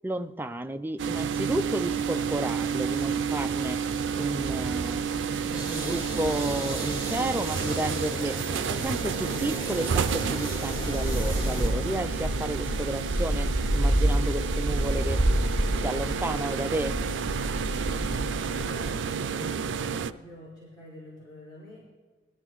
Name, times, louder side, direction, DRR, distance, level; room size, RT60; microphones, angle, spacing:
voice 1, 0.0-3.8 4.2-5.0 5.5-8.4 8.8-15.2 15.8-17.0, right 1 dB, 10° right, 8 dB, 0.3 m, -32 dB
sound 1, 1.0-20.1, right 6 dB, 85° right, 0.4 m, -30 dB
sound 2, 1.8-18.9, right 1 dB, 75° left, 3.8 m, -31 dB
sound 3, 5.5-11.7, right 2 dB, 35° right, 4.9 m, -37 dB
voice 2, 17.7-18.9 19.2-21.8, left 1 dB, 25° left, -10 dB, 5.2 m, -47 dB
20.5 x 13.0 x 3.1 m, 1.4 s
head